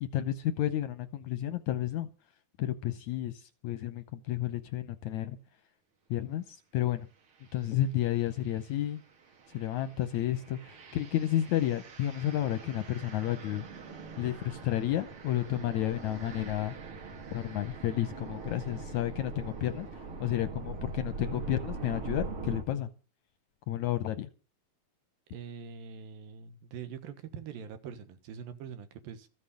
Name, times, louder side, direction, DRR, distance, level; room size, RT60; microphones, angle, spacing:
voice 1, 0.0-2.1 2.6-5.4 6.1-7.1 7.5-9.0 9.5-13.7 14.2-16.8 17.3-22.9 23.7-24.3, left 12 dB, 75° left, 12 dB, 1.8 m, -31 dB
sound 1, 7.4-7.6 8.2-22.6, right 4 dB, 45° right, 2.3 m, -43 dB
voice 2, 25.3-29.3, right 7 dB, 80° right, 10 dB, 3.2 m, -43 dB
14.5 x 7.8 x 8.4 m, 0.35 s
omnidirectional pair, 4.1 m